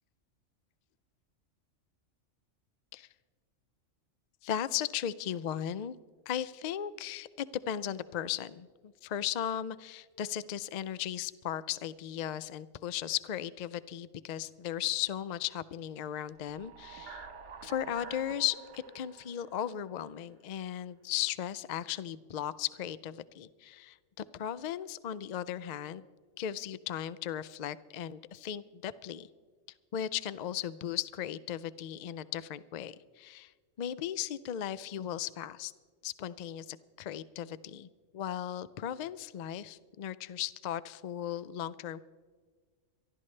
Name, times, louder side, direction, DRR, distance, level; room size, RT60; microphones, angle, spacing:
voice 1, 4.4-6.0 6.3-17.3 17.6-26.1 26.4-29.3 29.9-33.5 33.8-35.7 36.0-37.9 38.1-42.0, left 10 dB, 90° left, 17 dB, 0.3 m, -36 dB
sound 1, 16.3-20.6, right 5 dB, 65° right, 1.7 m, -49 dB
25.0 x 12.5 x 3.3 m, 1.5 s
omnidirectional pair, 1.3 m